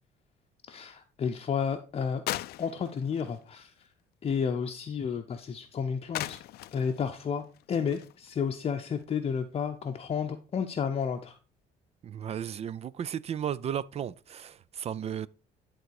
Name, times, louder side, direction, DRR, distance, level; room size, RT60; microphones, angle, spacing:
voice 1, 0.7-2.2 2.6-3.7 4.2-6.4 6.7-11.4, left 6 dB, 35° left, 0.7 m, -31 dB
sound 1, 2.3-3.9 5.5-5.6 6.1-9.1 9.5-9.7 10.1-10.2 11.0-11.2, left 16 dB, 70° left, 0.4 m, -40 dB
voice 2, 12.0-15.3, right 9 dB, 40° right, 0.4 m, -34 dB
11.0 x 3.9 x 4.7 m
cardioid pair, 110°, 17 cm